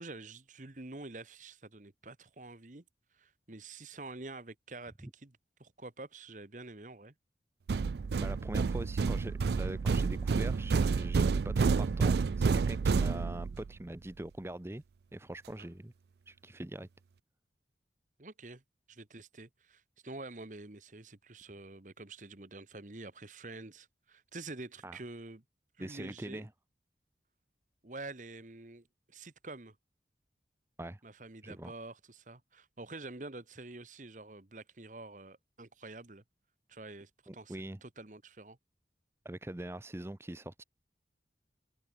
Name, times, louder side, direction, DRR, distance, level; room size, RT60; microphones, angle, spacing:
voice 1, 0.0-2.8 3.1-7.1 18.2-18.6 18.9-25.4 25.8-26.5 27.8-29.8 31.0-36.2 36.7-38.6, right 2 dB, 45° right, 1.3 m, -47 dB
sound 1, 7.7-13.7, right 5 dB, 65° right, 0.4 m, -29 dB
voice 2, 8.2-14.8 15.1-15.9 16.3-16.9 24.8-25.0 25.8-26.5 30.8-31.0 31.4-31.7 37.3-37.8 39.2-40.6, right 1 dB, 15° right, 0.6 m, -43 dB
open air
head